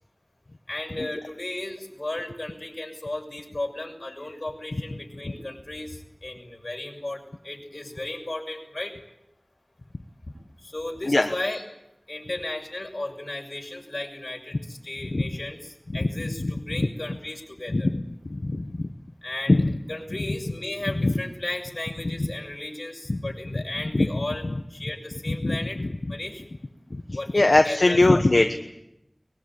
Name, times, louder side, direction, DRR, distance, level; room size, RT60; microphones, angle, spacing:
voice 1, 0.7-9.0 10.6-11.6 12.1-17.9 19.2-25.8 26.1-26.4 27.1-28.5, left 1 dB, 60° left, 1 dB, 6.5 m, -35 dB
voice 2, 18.3-18.6 19.5-19.7 21.0-21.1 23.1-23.2 23.9-24.1 25.3-25.9 27.3-28.6, left 2 dB, 80° left, 5 dB, 1.3 m, -20 dB
23.0 x 22.0 x 8.8 m, 0.84 s
wide cardioid pair, 45°, 0 cm